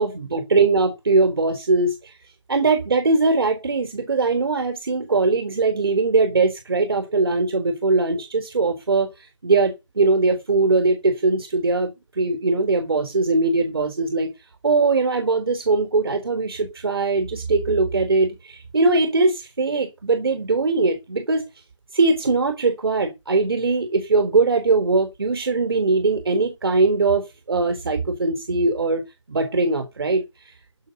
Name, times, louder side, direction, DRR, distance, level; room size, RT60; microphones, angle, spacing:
voice 1, 0.0-2.1 2.5-9.1 9.4-14.3 14.6-21.4 21.9-29.0 29.3-30.2, right 3 dB, 50° right, 4.1 m, -21 dB
15.5 x 5.4 x 9.3 m
figure-of-eight pair, 170°, 16 cm